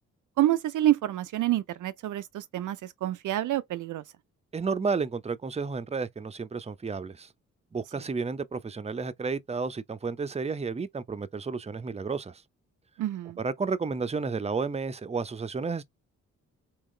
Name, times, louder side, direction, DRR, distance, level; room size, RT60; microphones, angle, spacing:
voice 1, 0.4-4.0 13.0-13.4, right 13 dB, 60° right, 0.5 m, -27 dB
voice 2, 4.5-7.3 7.7-12.4 13.4-15.8, right 4 dB, 20° right, 0.6 m, -32 dB
3.7 x 2.9 x 3.1 m
supercardioid pair, 45°, 34 cm